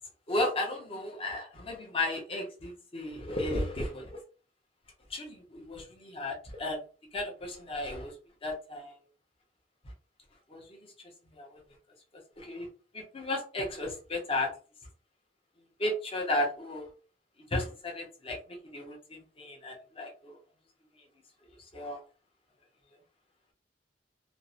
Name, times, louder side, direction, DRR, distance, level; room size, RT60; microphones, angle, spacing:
voice 1, 0.3-4.2 5.1-6.8 7.1-8.1 8.4-9.0 10.5-10.8 11.3-11.6 12.4-12.7 12.9-14.5 15.8-16.9 17.5-20.4 21.7-22.0, left 1 dB, 30° left, 0 dB, 0.7 m, -34 dB
2.6 x 2.0 x 2.6 m, 0.36 s
head